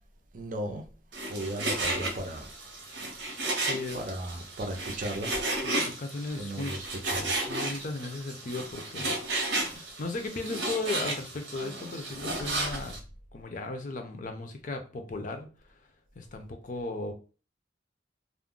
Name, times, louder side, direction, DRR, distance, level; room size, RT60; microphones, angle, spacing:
voice 1, 0.3-1.0 1.3-2.5 3.9-5.3 6.3-7.4, right 1 dB, 50° right, 0.5 m, -36 dB
Frying (food), 1.1-13.0, right 2 dB, 90° right, 0.8 m, -33 dB
voice 2, 3.6-4.0 5.5-6.9 7.5-9.2 9.7-13.0 13.3-15.5 16.2-17.1, left 2 dB, 45° left, 0.5 m, -36 dB
2.4 x 2.0 x 3.6 m
head